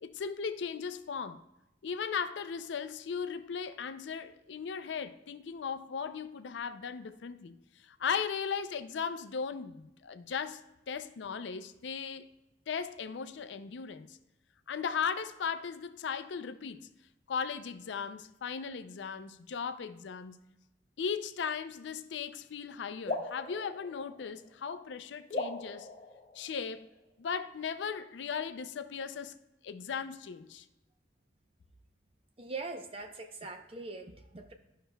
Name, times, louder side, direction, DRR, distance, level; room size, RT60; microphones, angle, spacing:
voice 1, 0.0-1.4 1.8-7.6 7.8-10.6 10.9-12.3 12.7-14.2 14.7-16.9 17.3-20.4 21.0-25.9 26.3-26.9 27.2-29.4 29.6-30.7, left 6 dB, 75° left, 0.4 m, -37 dB
sound 1, 23.1-24.7 25.3-27.0, left 2 dB, 40° left, 1.0 m, -39 dB
voice 2, 32.4-34.5, right 3 dB, 30° right, 0.6 m, -42 dB
11.5 x 5.6 x 2.3 m
head